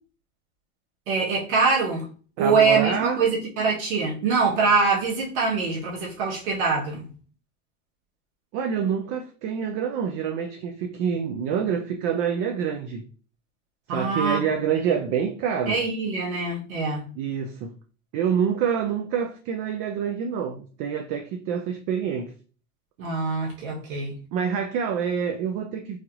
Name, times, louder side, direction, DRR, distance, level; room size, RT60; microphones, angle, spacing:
voice 1, 1.1-2.1 2.4-7.1 13.9-14.4 15.7-17.1 23.0-24.2, right 4 dB, 80° right, 1.1 m, -24 dB
voice 2, 2.4-3.2 8.5-13.0 13.9-15.8 17.2-17.7 18.1-22.3 24.3-26.0, right 7 dB, 40° right, 0.4 m, -27 dB
3.2 x 2.4 x 2.8 m
supercardioid pair, 120°, 41 cm